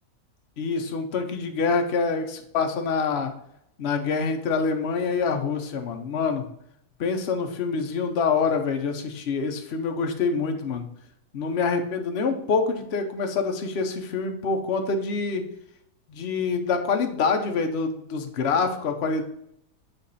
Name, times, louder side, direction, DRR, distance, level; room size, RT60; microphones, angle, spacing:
voice 1, 0.6-3.3 3.8-6.5 7.0-10.9 11.3-15.5 16.1-19.2, left 4 dB, 55° left, 5 dB, 0.8 m, -26 dB
8.3 x 3.1 x 4.0 m, 0.74 s
omnidirectional pair, 1.9 m